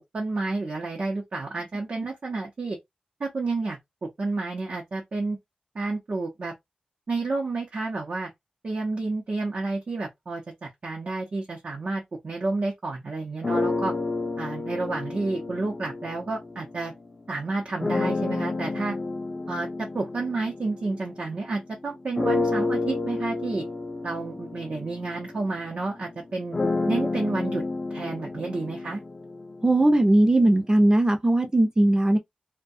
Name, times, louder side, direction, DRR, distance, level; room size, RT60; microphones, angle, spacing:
voice 1, 0.0-2.8 3.2-5.4 5.7-6.5 7.1-8.3 8.6-13.9 14.4-16.9 17.3-19.0 19.5-23.6 24.0-26.6 26.9-27.6 27.9-29.0, right 3 dB, 60° right, 0.7 m, -30 dB
sound 1, 13.4-17.0 17.8-21.6 22.2-30.1, left 3 dB, 35° left, 0.4 m, -30 dB
voice 2, 29.6-32.2, right 1 dB, 25° right, 0.6 m, -19 dB
2.3 x 2.2 x 2.6 m
wide cardioid pair, 70°, 3 cm